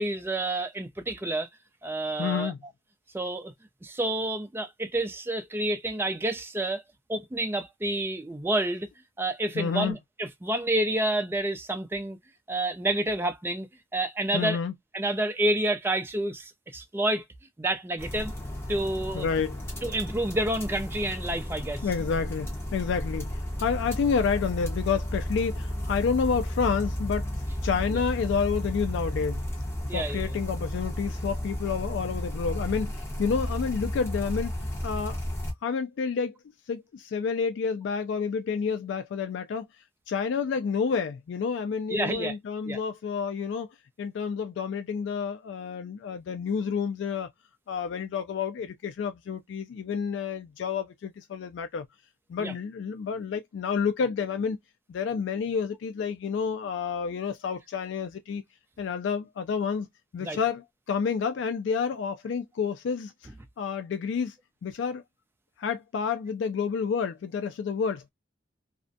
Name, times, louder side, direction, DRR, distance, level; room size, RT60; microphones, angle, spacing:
voice 1, 0.0-1.5 1.8-2.5 3.1-3.5 3.8-6.8 7.1-8.9 9.2-12.2 12.5-14.6 14.9-17.2 17.6-18.3 18.7-19.3 19.8-21.9 27.9-28.0 29.9-30.4 41.9-42.4 42.6-42.8 52.4-52.5 60.2-60.4, right 1 dB, 10° right, 0.3 m, -29 dB
voice 2, 2.2-2.6 9.6-10.0 14.3-14.7 19.1-19.6 21.8-27.3 27.6-29.4 29.9-35.2 35.6-36.3 36.7-39.7 40.1-43.7 44.0-47.3 47.7-51.9 52.3-54.6 54.9-58.4 58.8-59.9 60.1-63.1 63.6-64.4 64.6-65.0 65.6-68.1, left 6 dB, 70° left, 0.3 m, -29 dB
sound 1, 18.0-35.5, equal, 15° left, 0.9 m, -33 dB
2.4 x 2.1 x 2.5 m
head